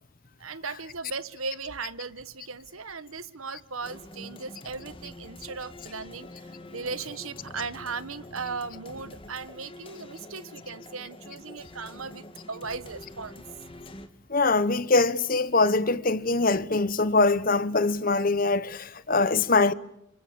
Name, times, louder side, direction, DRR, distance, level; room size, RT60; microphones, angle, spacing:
voice 1, 0.4-13.4, right 4 dB, 90° right, 1.5 m, -37 dB
sound 1, 3.8-14.1, left 1 dB, 25° left, 2.1 m, -46 dB
voice 2, 14.3-19.7, left 3 dB, 40° left, 1.0 m, -23 dB
29.5 x 26.0 x 7.1 m
head